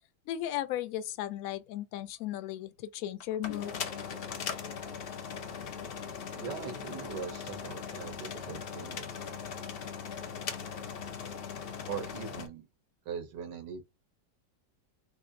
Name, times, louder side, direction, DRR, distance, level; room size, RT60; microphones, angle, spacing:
voice 1, 0.3-3.8, left 12 dB, 70° left, 0.9 m, -36 dB
sound 1, 3.2-12.5, left 6 dB, 90° left, 0.5 m, -39 dB
voice 2, 6.3-9.6 11.9-12.7 13.0-13.8, right 6 dB, 85° right, 1.5 m, -41 dB
4.1 x 2.9 x 2.5 m
omnidirectional pair, 1.8 m